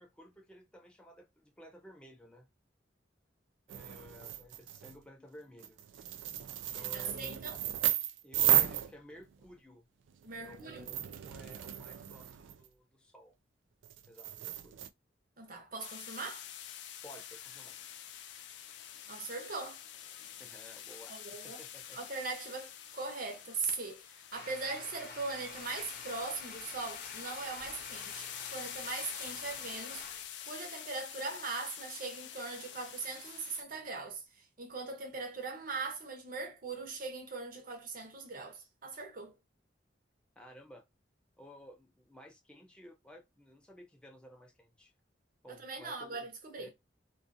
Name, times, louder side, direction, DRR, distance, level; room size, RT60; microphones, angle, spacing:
voice 1, 0.0-2.5 3.7-5.8 6.5-7.4 8.2-9.9 10.4-13.3 14.1-14.8 17.0-17.8 20.4-22.0 40.4-40.8 41.4-44.9 45.4-46.3 46.6-46.7, equal, 5° left, 0.6 m, -54 dB
sound 1, 3.7-5.0 5.6-9.5 10.1-12.7 13.8-14.9, right 11 dB, 85° right, 0.3 m, -34 dB
voice 2, 6.8-7.6 10.2-10.9 15.4-16.5 19.1-19.8 21.1-21.6 21.9-24.0 24.3-30.0 30.4-34.2 34.6-39.3 45.5-46.7, right 4 dB, 50° right, 0.8 m, -40 dB
sound 2, 15.8-33.6, left 10 dB, 70° left, 0.4 m, -47 dB
sound 3, 24.3-30.2, left 3 dB, 55° left, 0.8 m, -49 dB
2.4 x 2.4 x 2.5 m
head